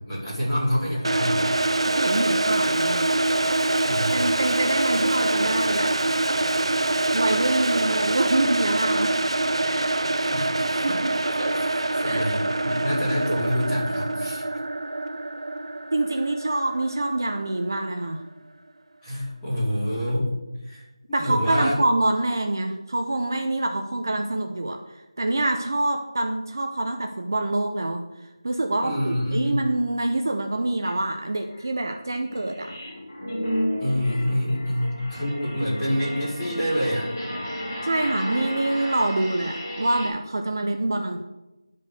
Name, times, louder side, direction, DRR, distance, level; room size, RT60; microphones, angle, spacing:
voice 1, 0.0-1.5 3.8-4.3 10.2-11.0 11.3-14.4 16.2-16.3 19.0-20.3 20.6-21.7 28.8-29.6 33.8-37.1, equal, 5° left, -12 dB, 2.4 m, -27 dB
sound 1, 1.0-17.9, right 2 dB, 70° right, 0.6 m, -25 dB
voice 2, 1.9-3.1 4.1-5.9 7.1-9.2 9.6-9.9 10.8-11.5 12.0-12.2 15.9-18.2 21.1-28.0 28.4-32.7 37.8-41.2, right 2 dB, 40° right, 4 dB, 0.8 m, -26 dB
sound 2, 30.8-30.9 31.4-40.1, equal, 30° left, 3.6 m, -33 dB
11.0 x 5.3 x 6.9 m, 1.0 s
figure-of-eight pair, 175°, 3 cm